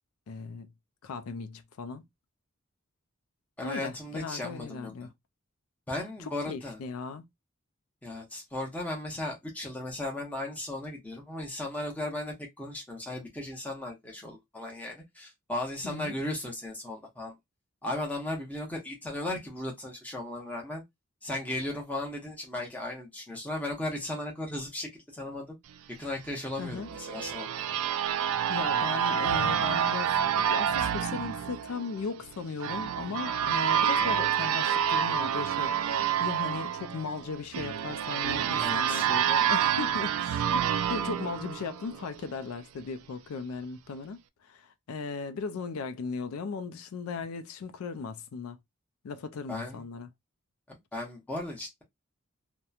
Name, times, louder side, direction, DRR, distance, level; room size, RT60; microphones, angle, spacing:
voice 1, 0.3-0.7 1.0-2.0 3.6-5.1 6.2-7.3 15.8-16.1 26.6-26.9 28.5-48.6 49.0-50.1, left 5 dB, 85° left, 0.4 m, -37 dB
voice 2, 3.6-4.9 5.9-6.8 8.0-17.3 17.8-20.8 21.2-25.6 26.0-27.5 38.6-39.1 49.5-49.8 50.7-51.8, left 1 dB, 5° left, 0.7 m, -36 dB
sound 1, 26.6-42.2, right 9 dB, 85° right, 0.3 m, -28 dB
2.9 x 2.1 x 2.3 m
head